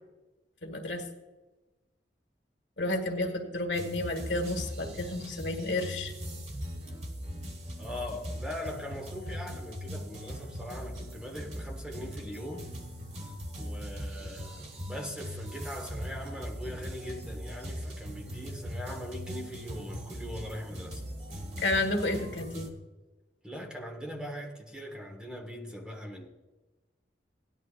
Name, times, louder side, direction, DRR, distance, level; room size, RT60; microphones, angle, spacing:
voice 1, 0.6-1.0 2.8-6.1 21.6-22.7, left 2 dB, 90° left, 1.8 m, -31 dB
sound 1, 3.7-22.7, equal, 40° right, 1.6 m, -40 dB
voice 2, 7.8-12.7 13.6-21.0 23.4-26.3, equal, 5° right, 1.5 m, -41 dB
17.5 x 11.0 x 2.5 m
head